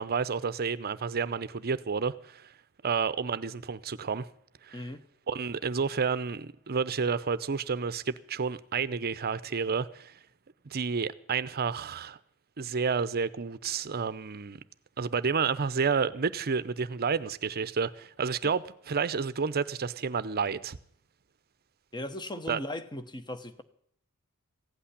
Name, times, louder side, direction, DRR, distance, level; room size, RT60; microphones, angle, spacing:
voice 1, 0.0-2.5 2.8-4.3 4.6-4.8 5.3-10.2 10.6-12.2 12.6-14.6 15.0-20.8 22.5-22.6, right 5 dB, 45° right, 0.7 m, -30 dB
voice 2, 4.7-5.0 18.4-18.5 21.9-23.6, left 1 dB, 20° left, 1.0 m, -38 dB
16.0 x 8.5 x 10.0 m
head